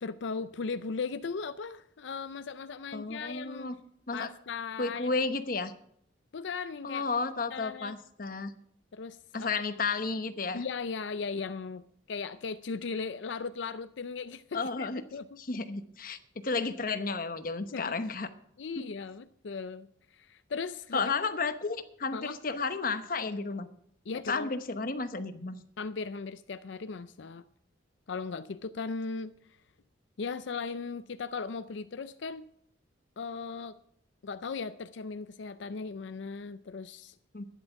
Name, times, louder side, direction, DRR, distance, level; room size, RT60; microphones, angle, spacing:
voice 1, 0.0-3.7 4.1-5.2 6.3-7.0 7.5-8.0 8.9-9.5 10.5-15.4 17.7-18.0 18.6-19.9 20.1-21.1 22.1-22.4 24.1-24.5 25.8-27.4 28.1-29.3 30.2-32.5 33.2-33.7 34.2-37.2, left 4 dB, 75° left, 0.5 m, -37 dB
voice 2, 2.9-3.8 4.1-4.3 4.8-5.7 6.8-8.5 9.3-10.6 14.5-15.0 15.4-16.2 16.4-18.3 20.9-23.7 24.3-25.6 37.3-37.5, left 4 dB, 50° left, 1.0 m, -32 dB
11.5 x 10.5 x 5.8 m
head